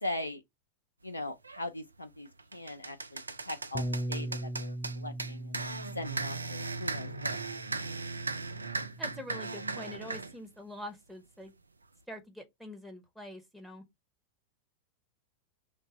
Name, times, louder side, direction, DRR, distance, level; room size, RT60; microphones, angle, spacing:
voice 1, 0.0-0.4 1.0-7.5, left 1 dB, 80° left, 0.4 m, -40 dB
sound 1, 1.4-1.6 2.1-10.3, right 3 dB, 80° right, 0.3 m, -37 dB
Bass guitar, 3.7-10.0, right 1 dB, 25° left, 0.5 m, -40 dB
voice 2, 9.0-11.5 12.1-13.8, left 1 dB, 5° right, 1.0 m, -45 dB
3.3 x 2.5 x 4.2 m
figure-of-eight pair, 90°, 0 cm